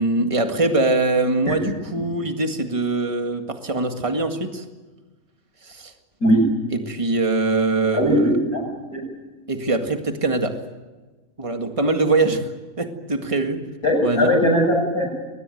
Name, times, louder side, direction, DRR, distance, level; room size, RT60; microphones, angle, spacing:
voice 1, 0.0-4.7 5.6-5.9 6.7-8.4 9.5-10.6 11.4-12.4 12.8-13.6 14.0-14.3, right 3 dB, 20° right, 5 dB, 1.9 m, -22 dB
voice 2, 7.9-9.1 13.8-15.1, equal, 85° left, 2 dB, 7.6 m, -19 dB
22.5 x 19.5 x 9.2 m, 1.2 s
omnidirectional pair, 1.5 m